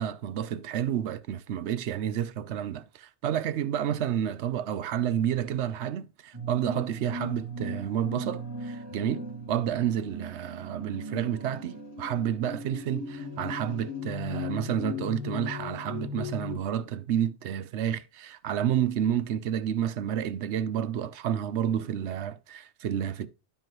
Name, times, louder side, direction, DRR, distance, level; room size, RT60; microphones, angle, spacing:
voice 1, 0.0-23.3, right 10 dB, 85° right, 0.9 m, -30 dB
sound 1, 6.3-16.6, left 2 dB, 25° right, 2.2 m, -38 dB
12.0 x 4.6 x 3.1 m
omnidirectional pair, 1.1 m